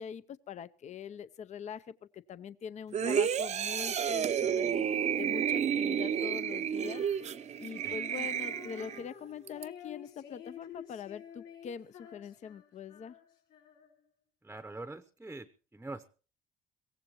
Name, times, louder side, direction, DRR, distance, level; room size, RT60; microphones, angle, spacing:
voice 1, 0.0-4.8 5.2-7.0 7.6-13.2, left 7 dB, 45° left, 15 dB, 0.7 m, -43 dB
sound 1, 2.9-9.0 9.5-9.6, right 8 dB, 40° right, 0.7 m, -31 dB
Female singing, 6.7-14.1, left 8 dB, 80° left, 5.0 m, -52 dB
voice 2, 14.4-15.5 15.7-16.1, right 2 dB, 10° right, 10 dB, 0.8 m, -43 dB
22.5 x 17.0 x 3.0 m, 0.38 s
cardioid pair, 110°, 17 cm